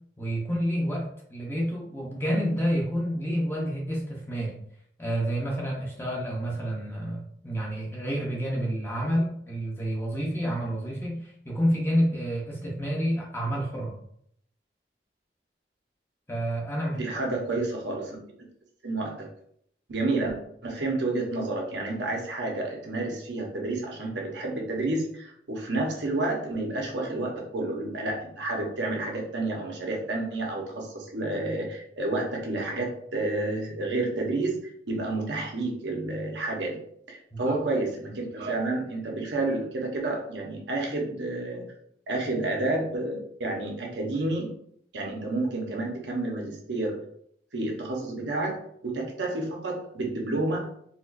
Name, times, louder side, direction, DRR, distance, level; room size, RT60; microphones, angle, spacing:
voice 1, 0.2-4.6 5.0-14.0 16.3-17.0 37.3-37.6, equal, 15° left, -3 dB, 0.6 m, -29 dB
voice 2, 16.9-18.2 18.8-19.3 19.9-20.3 20.6-34.5 34.9-36.8 37.1-41.6 42.1-44.5 44.9-47.0 47.5-48.6 48.8-50.6, right 2 dB, 85° right, 0 dB, 0.9 m, -30 dB
4.2 x 2.3 x 2.4 m, 0.69 s
head